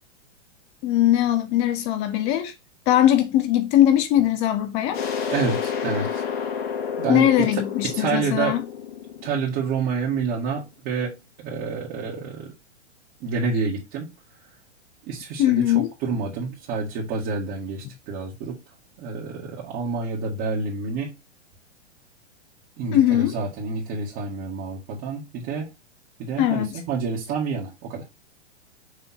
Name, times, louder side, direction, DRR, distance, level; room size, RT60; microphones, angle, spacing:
voice 1, 0.8-2.5 2.9-5.0 7.1-8.6 15.4-15.9 22.9-23.3 26.4-26.8, left 12 dB, 20° left, 0.3 m, -20 dB
sound 1, 4.9-10.4, left 7 dB, 55° left, 2.5 m, -30 dB
voice 2, 5.3-6.2 7.0-7.6 7.9-8.6 9.2-12.5 13.2-14.1 15.0-18.6 19.0-21.1 22.8-25.7 26.2-28.1, right 5 dB, 35° right, 2.1 m, -28 dB
6.7 x 3.4 x 4.4 m
hypercardioid pair, 130°, 35 cm